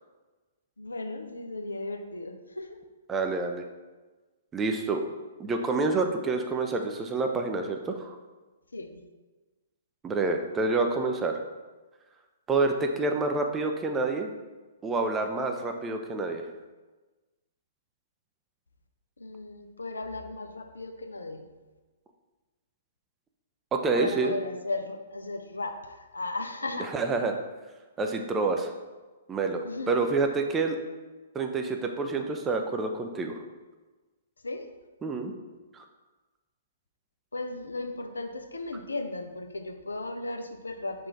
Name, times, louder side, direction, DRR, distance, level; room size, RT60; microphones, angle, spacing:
voice 1, 0.8-2.8 8.7-9.0 19.2-21.5 23.9-26.9 29.6-30.0 34.4-34.7 37.3-41.1, left 2 dB, 75° left, 5 dB, 0.4 m, -36 dB
voice 2, 3.1-3.6 4.5-5.0 5.4-8.2 10.0-11.3 12.5-14.3 14.8-16.4 23.7-24.3 26.8-27.4 28.0-28.7 29.3-30.8 31.3-33.4 35.0-35.3 35.7-35.8, right 3 dB, 15° right, 4 dB, 0.4 m, -28 dB
3.7 x 2.4 x 4.5 m, 1.2 s
figure-of-eight pair, 115°, 0 cm